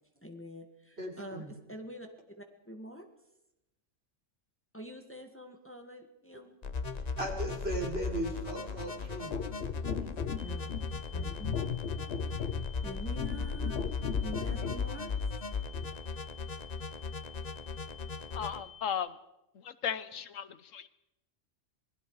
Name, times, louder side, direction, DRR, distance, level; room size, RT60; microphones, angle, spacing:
voice 1, 0.2-2.1 2.4-3.1 4.7-6.5 9.9-10.1 10.4-10.7 11.1-11.6 12.3-12.4 12.8-13.8 14.2-15.4, equal, 10° left, 4 dB, 1.7 m, -46 dB
voice 2, 1.0-1.5 7.2-9.3, right 1 dB, 55° right, 0 dB, 4.5 m, -37 dB
sound 1, 6.6-18.6, left 4 dB, 35° left, 1.0 m, -37 dB
sound 2, 9.3-14.9 15.7-15.9, left 7 dB, 60° left, 1.1 m, -37 dB
sound 3, 10.4-18.9, left 8 dB, 5° right, 7.1 m, -52 dB
voice 3, 18.3-19.2 19.6-20.9, left 8 dB, 85° left, 14 dB, 1.3 m, -36 dB
27.0 x 20.5 x 4.8 m, 0.90 s
omnidirectional pair, 1.3 m